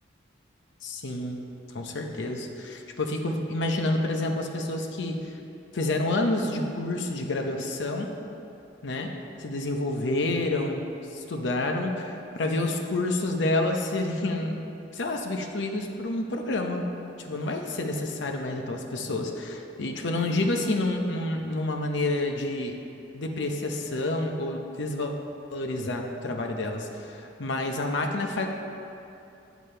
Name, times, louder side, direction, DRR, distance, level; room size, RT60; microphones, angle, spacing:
voice 1, 0.8-5.4 5.7-8.1 8.8-9.1 9.4-10.8 11.1-14.6 14.9-16.9 17.2-22.8 23.1-25.1 25.5-28.5, left 2 dB, 65° left, 3 dB, 0.7 m, -29 dB
8.4 x 7.1 x 4.4 m, 2.8 s
head